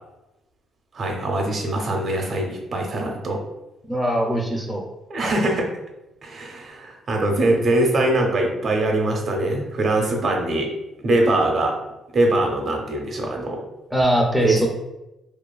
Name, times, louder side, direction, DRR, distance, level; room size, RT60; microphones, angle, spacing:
voice 1, 0.9-3.4 5.1-5.7 6.2-10.7 11.0-11.8 12.1-13.6 14.4-14.7, right 2 dB, 50° right, 1 dB, 0.5 m, -22 dB
voice 2, 3.9-4.8 13.9-14.7, equal, ahead, 0 dB, 0.4 m, -21 dB
2.5 x 2.4 x 2.2 m, 0.95 s
cardioid pair, 90°, 0 cm